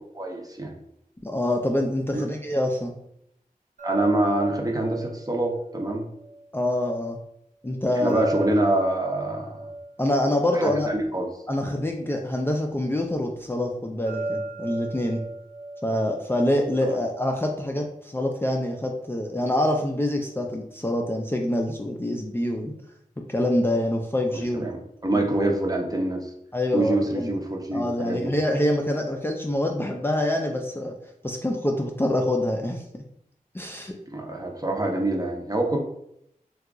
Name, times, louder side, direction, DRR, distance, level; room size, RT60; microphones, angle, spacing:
voice 1, 0.1-0.7 2.1-2.2 3.8-6.0 8.0-9.6 10.5-11.3 16.9-17.0 24.3-26.3 26.7-28.3 34.1-35.8, right 1 dB, 25° right, 1 dB, 0.7 m, -25 dB
voice 2, 1.2-2.9 6.5-7.2 7.6-8.2 10.0-10.9 11.5-15.2 15.8-22.7 23.3-24.7 25.1-25.2 26.5-27.3 27.7-30.9 31.2-32.8 33.5-33.9, left 1 dB, 15° left, 1 dB, 0.4 m, -25 dB
sound 1, 3.8-6.9 8.1-11.6 14.1-17.2, right 2 dB, 65° right, 1.0 m, -36 dB
2.8 x 2.3 x 3.6 m, 0.75 s
wide cardioid pair, 55°, 15 cm